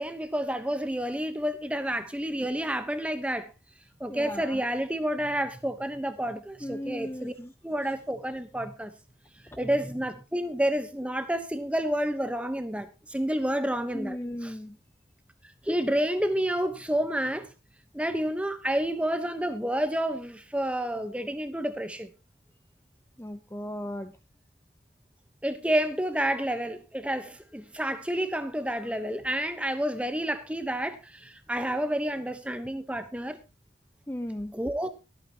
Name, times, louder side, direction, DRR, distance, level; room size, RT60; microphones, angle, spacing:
voice 1, 0.0-3.5 4.0-7.3 7.6-8.9 9.6-14.5 15.6-17.5 17.9-22.1 25.4-33.4 34.5-34.9, right 1 dB, 5° right, 1.0 m, -29 dB
voice 2, 4.1-4.6 6.6-7.5 13.9-14.8 23.2-24.1 34.1-34.5, left 1 dB, 15° left, 0.7 m, -36 dB
23.0 x 8.8 x 3.0 m
head